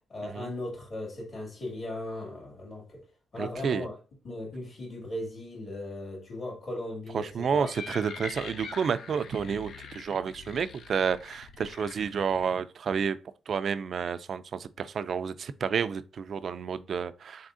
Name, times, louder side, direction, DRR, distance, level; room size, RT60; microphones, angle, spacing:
voice 1, 0.1-3.0 3.3-4.0 4.2-7.7, left 1 dB, 40° left, 2.1 m, -37 dB
voice 2, 3.4-3.9 7.1-13.2 13.5-17.5, right 6 dB, 50° right, 0.3 m, -30 dB
sound 1, 7.3-12.5, left 5 dB, 70° left, 0.5 m, -44 dB
4.0 x 3.6 x 2.5 m
cardioid pair, 130°, 0 cm